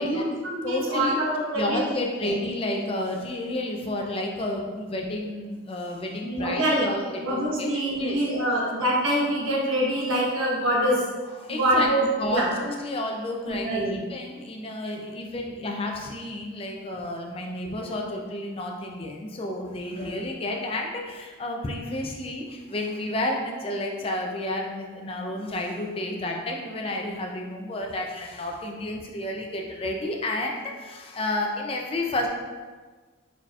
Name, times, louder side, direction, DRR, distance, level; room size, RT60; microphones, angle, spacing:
voice 1, 0.0-1.8 6.2-6.9 7.2-12.5 13.4-14.0 19.9-20.1, right 1 dB, 90° right, -4 dB, 1.1 m, -25 dB
voice 2, 0.6-1.2 1.5-8.2 11.4-11.9 12.2-32.3, left 1 dB, 30° left, 1 dB, 0.4 m, -31 dB
4.2 x 4.1 x 2.3 m, 1.4 s
head